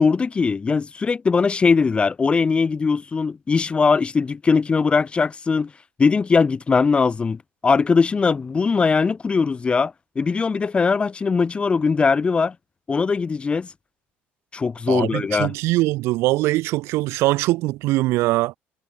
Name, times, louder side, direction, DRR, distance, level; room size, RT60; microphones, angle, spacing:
voice 1, 0.0-5.7 6.0-12.5 12.9-13.7 14.5-15.5, left 5 dB, 25° left, 0.7 m, -20 dB
voice 2, 14.9-18.6, right 19 dB, 85° right, 2.5 m, -22 dB
cardioid pair, 120°, 4 cm